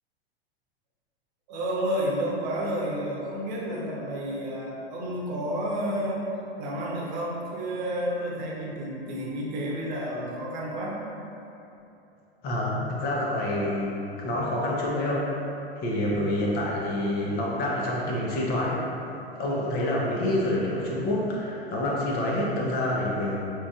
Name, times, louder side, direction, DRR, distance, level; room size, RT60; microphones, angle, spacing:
voice 1, 1.5-6.2 6.6-11.0, equal, 45° right, -3 dB, 1.0 m, -30 dB
voice 2, 12.4-15.4 15.8-23.4, left 1 dB, 30° left, -4 dB, 0.8 m, -27 dB
6.1 x 3.0 x 2.4 m, 2.9 s
figure-of-eight pair, 95°, 31 cm